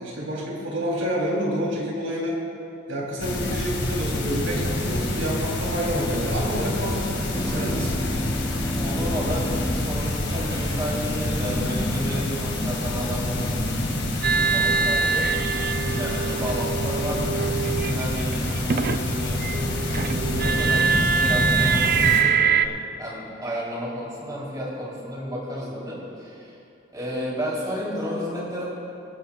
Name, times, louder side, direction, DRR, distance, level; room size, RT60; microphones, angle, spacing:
voice 1, 0.0-2.4 2.9-8.0 15.4-15.6, equal, 85° right, -4 dB, 3.4 m, -28 dB
sound 1, 3.2-22.2, left 1 dB, 60° left, 2.2 m, -27 dB
sound 2, 7.3-12.2, equal, 20° left, 1.0 m, -33 dB
voice 2, 8.8-15.3 15.8-19.4 19.9-26.5 26.9-28.7, equal, 20° right, -5 dB, 3.5 m, -32 dB
sound 3, 14.2-19.1 19.4-22.7, right 6 dB, 50° right, 0.4 m, -24 dB
24.0 x 11.0 x 2.4 m, 2.7 s
head